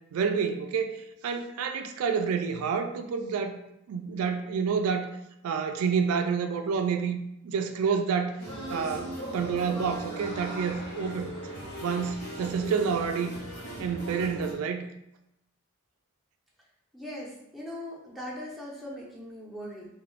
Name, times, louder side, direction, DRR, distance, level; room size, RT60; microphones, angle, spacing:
voice 1, 0.1-1.0 1.2-3.6 3.9-5.1 5.4-7.2 7.4-8.4 8.7-11.4 11.8-13.3 13.8-14.9, right 6 dB, 80° right, 10 dB, 0.3 m, -28 dB
sound 1, 8.4-14.5, right 1 dB, 85° left, 0.9 m, -38 dB
voice 2, 16.9-19.9, left 1 dB, ahead, -5 dB, 0.6 m, -40 dB
2.5 x 2.3 x 3.1 m, 0.84 s
head